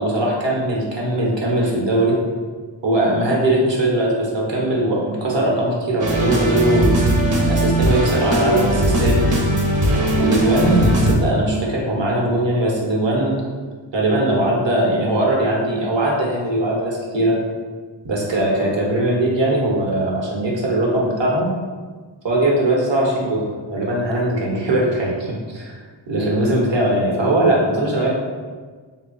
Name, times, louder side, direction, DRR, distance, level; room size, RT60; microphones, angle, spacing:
voice 1, 0.0-2.2 2.8-7.0 7.5-9.2 10.2-13.3 13.9-17.4 18.0-21.5 22.2-25.8 26.1-28.1, right 1 dB, 65° right, -2 dB, 1.1 m, -20 dB
sound 1, 6.0-11.1, right 1 dB, 40° right, 0.8 m, -18 dB
3.3 x 2.3 x 3.9 m, 1.5 s
cardioid pair, 50°, 47 cm